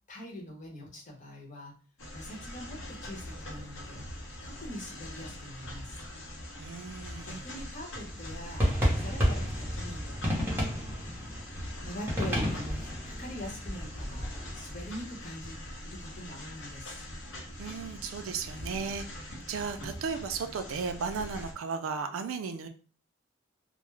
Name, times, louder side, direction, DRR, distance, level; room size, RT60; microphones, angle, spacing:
voice 1, 0.1-1.7 2.1-4.1 4.4-6.0 7.2-8.6 8.9-10.5 11.8-14.3 14.5-15.6 15.8-17.0, left 1 dB, 40° left, -2 dB, 0.8 m, -43 dB
sound 1, 2.0-21.5, left 1 dB, 75° left, 0.7 m, -43 dB
voice 2, 6.6-7.4 17.6-19.0 19.5-22.7, right 5 dB, 80° right, 6 dB, 0.3 m, -35 dB
sound 2, 7.9-14.9, equal, 10° right, 0.7 m, -32 dB
2.2 x 2.0 x 3.0 m, 0.38 s
head